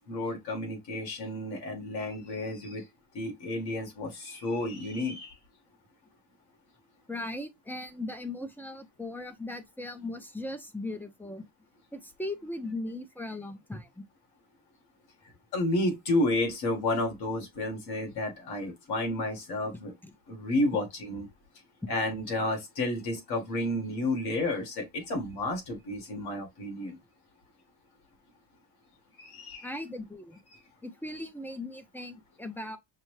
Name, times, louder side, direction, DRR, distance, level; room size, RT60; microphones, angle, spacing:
voice 1, 0.1-2.9 3.1-5.3 15.5-19.9 20.3-21.3 21.9-27.0 29.2-29.7, left 2 dB, 65° left, 1.8 m, -31 dB
voice 2, 7.1-11.5 11.9-14.0 20.0-20.1 29.6-30.4 30.8-32.8, left 2 dB, 5° left, 0.5 m, -38 dB
5.8 x 2.0 x 3.1 m
cardioid pair, 145°, 40 cm